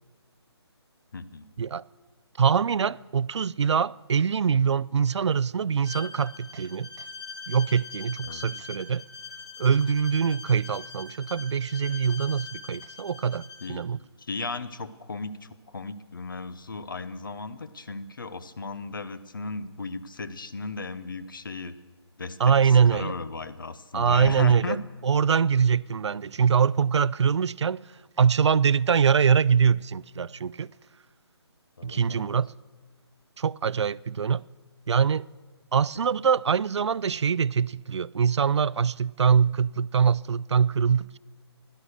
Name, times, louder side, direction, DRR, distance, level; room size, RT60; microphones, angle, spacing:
voice 1, 1.1-1.5 8.2-8.5 13.6-13.8 14.2-21.8 22.2-24.8 31.8-32.3, left 3 dB, 50° left, 0.8 m, -36 dB
voice 2, 2.4-6.9 7.5-9.0 9.6-14.0 22.4-23.1 23.9-24.8 25.0-27.8 28.2-30.7 31.8-32.5 33.4-34.4 34.9-35.2 35.7-41.2, right 6 dB, 80° right, 0.4 m, -23 dB
Bowed string instrument, 5.8-13.8, left 5 dB, 10° left, 0.8 m, -42 dB
16.0 x 11.5 x 6.6 m
hypercardioid pair, 180°, 14 cm